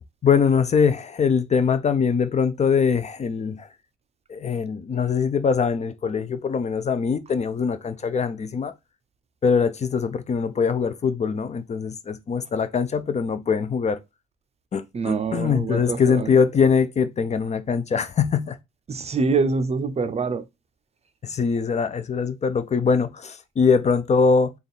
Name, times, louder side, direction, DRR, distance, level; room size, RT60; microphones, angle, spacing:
voice 1, 0.2-3.7 4.3-8.7 9.4-14.0 14.7-18.6 21.2-24.5, left 6 dB, 35° left, 0.5 m, -22 dB
voice 2, 14.9-16.3 18.9-20.4, right 4 dB, 35° right, 0.5 m, -25 dB
3.4 x 2.4 x 4.1 m
cardioid pair, 90°, 20 cm